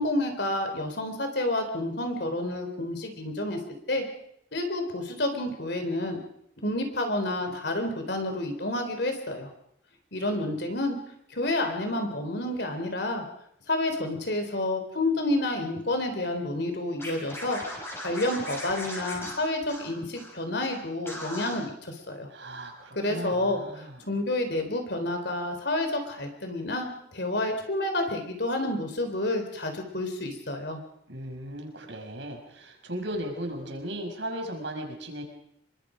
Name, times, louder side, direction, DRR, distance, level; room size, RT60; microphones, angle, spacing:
voice 1, 0.0-3.6 3.9-4.0 4.5-6.2 6.6-9.5 10.1-11.0 11.3-13.2 13.7-17.6 18.0-22.3 23.0-23.6 24.1-30.8, left 1 dB, 55° left, 5 dB, 3.8 m, -29 dB
Scratching (performance technique), 17.0-20.3 20.6-20.8 21.0-21.6, left 1 dB, 10° left, 6.3 m, -38 dB
voice 2, 22.3-24.0 31.1-35.2, right 1 dB, 65° right, 2 dB, 5.9 m, -36 dB
27.0 x 23.0 x 5.2 m, 0.74 s
head